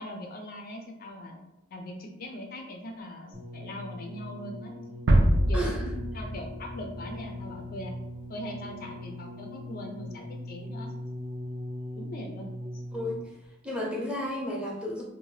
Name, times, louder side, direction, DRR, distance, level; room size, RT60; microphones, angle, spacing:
voice 1, 0.0-1.4 1.7-4.7 5.5-8.0 8.3-10.9 12.0-12.8, left 1 dB, 50° left, 2 dB, 0.4 m, -41 dB
sound 1, 3.3-13.4 14.3-14.4, left 1 dB, 85° right, 0.9 m, -40 dB
sound 2, 5.1-7.9, right 1 dB, 65° right, 0.4 m, -25 dB
voice 2, 5.5-5.8 12.9-13.3 13.6-15.0, equal, 5° right, -4 dB, 0.6 m, -32 dB
2.7 x 2.0 x 3.1 m, 0.89 s
head